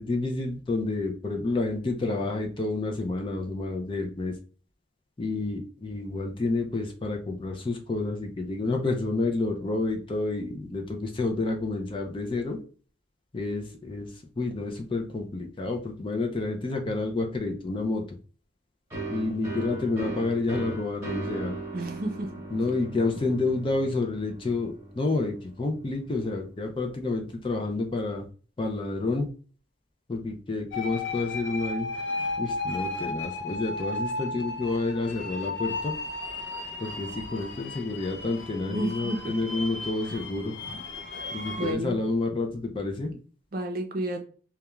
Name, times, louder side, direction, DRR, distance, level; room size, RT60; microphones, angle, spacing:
voice 1, 0.0-4.4 5.2-12.6 13.3-18.0 19.1-21.6 22.5-28.3 28.6-29.3 30.1-31.9 32.4-35.9 36.8-40.5 41.3-43.1, left 3 dB, 25° left, 3 dB, 0.3 m, -29 dB
sound 1, 18.9-26.4, right 2 dB, 15° right, 1.1 m, -38 dB
voice 2, 21.7-22.3 38.7-39.3 40.1-40.2 41.2-41.3 41.6-42.0 43.5-44.2, right 1 dB, 50° right, 3 dB, 0.5 m, -31 dB
sound 2, 30.7-41.7, left 2 dB, 70° left, 0.6 m, -35 dB
2.3 x 2.2 x 2.9 m, 0.40 s
head